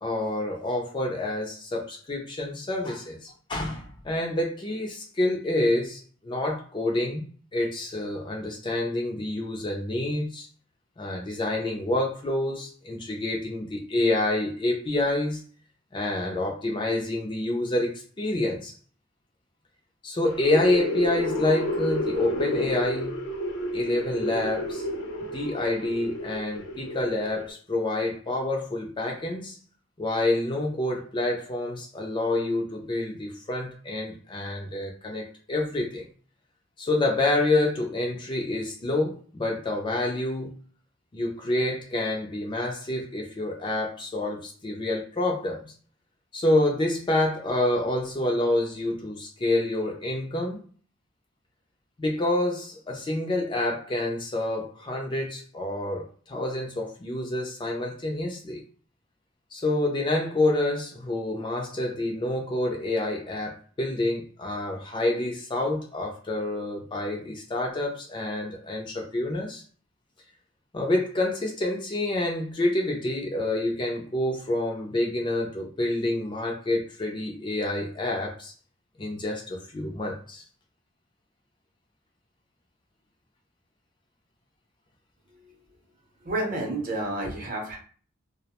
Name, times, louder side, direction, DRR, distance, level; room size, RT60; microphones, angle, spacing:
voice 1, 0.0-7.2 7.5-10.5 11.0-15.4 15.9-18.7 20.0-23.2 23.7-24.9 25.3-29.6 30.0-36.1 36.8-40.5 41.1-45.6 46.3-50.6 52.0-58.6 59.5-69.6 70.7-78.5 79.0-80.4, left 1 dB, 25° left, 0 dB, 0.3 m, -28 dB
sound 1, 20.3-27.5, left 1 dB, 75° left, 0.7 m, -31 dB
voice 2, 86.2-87.8, right 1 dB, 40° right, 0 dB, 0.7 m, -30 dB
2.4 x 2.0 x 2.8 m, 0.44 s
head